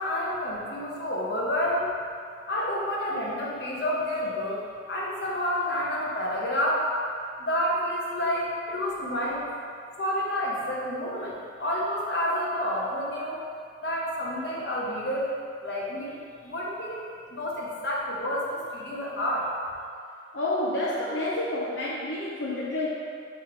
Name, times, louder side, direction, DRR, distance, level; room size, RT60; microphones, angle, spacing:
voice 1, 0.0-1.9 2.5-4.6 4.9-6.9 7.4-9.5 10.0-13.4 13.8-15.3 15.6-17.0 17.3-19.5, equal, 65° left, -4 dB, 1.1 m, -29 dB
voice 2, 20.3-22.9, left 1 dB, 80° left, -7 dB, 0.8 m, -29 dB
4.8 x 4.3 x 4.8 m, 2.3 s
head